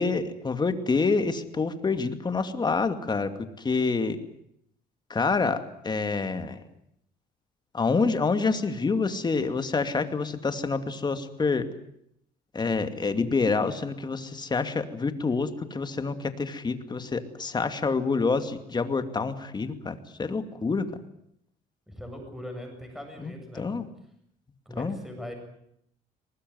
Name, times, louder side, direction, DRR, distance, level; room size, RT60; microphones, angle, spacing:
voice 1, 0.0-3.3 3.6-4.2 5.1-6.6 7.7-11.7 12.5-20.8 23.2-23.9 24.8-25.0, left 4 dB, 25° left, 9 dB, 2.5 m, -27 dB
voice 2, 21.9-23.8 24.7-25.3, left 1 dB, ahead, 4 dB, 7.9 m, -40 dB
24.0 x 19.5 x 9.6 m, 0.73 s
cardioid pair, 110°, 17 cm